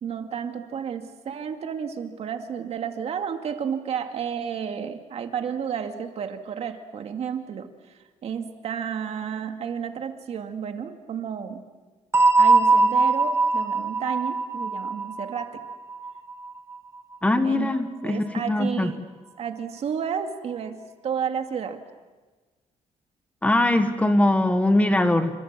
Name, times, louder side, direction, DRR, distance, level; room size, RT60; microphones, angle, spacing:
voice 1, 0.0-11.6 12.4-15.6 17.4-17.7 18.0-19.0 19.4-21.8, right 7 dB, 55° right, 6 dB, 2.3 m, -32 dB
sound 1, 12.1-16.8, right 3 dB, 20° right, 1.5 m, -21 dB
voice 2, 17.2-18.9 23.4-25.4, left 1 dB, 10° left, 8 dB, 1.5 m, -21 dB
29.0 x 26.0 x 7.6 m, 1.3 s
cardioid pair, 150°, 13 cm